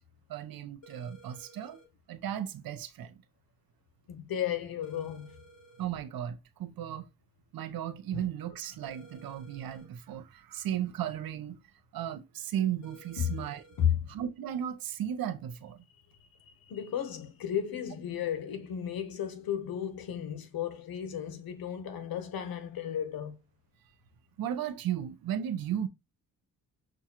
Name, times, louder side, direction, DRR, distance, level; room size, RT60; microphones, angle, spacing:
voice 1, 0.3-1.8 2.1-3.2 5.8-7.1 7.5-11.6 11.9-13.6 14.1-15.9 24.4-25.9, right 10 dB, 80° right, 0.6 m, -35 dB
sound 1, 0.8-1.9 4.8-5.9 8.8-9.9 12.8-13.9, right 1 dB, 50° left, 1.4 m, -55 dB
voice 2, 4.1-5.3 8.1-8.3 13.2-13.4 13.8-14.1 16.5-23.4, left 9 dB, 85° left, 0.9 m, -33 dB
6.1 x 2.2 x 2.8 m
wide cardioid pair, 130°, 35 cm